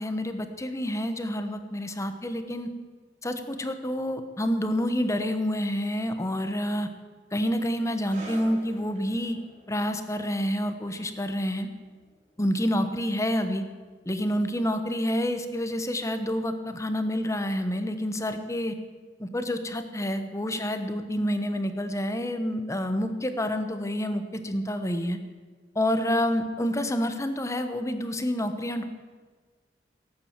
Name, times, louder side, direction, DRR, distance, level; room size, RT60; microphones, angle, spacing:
voice 1, 0.0-2.7 3.2-6.9 7.3-9.4 9.7-11.7 12.4-13.6 14.0-18.7 19.2-25.2 25.7-28.8, equal, 15° left, 8 dB, 1.0 m, -28 dB
sound 1, 8.0-15.0 15.3-15.5 16.3-16.4, right 1 dB, 50° right, 4.5 m, -50 dB
16.5 x 8.9 x 7.3 m, 1.5 s
head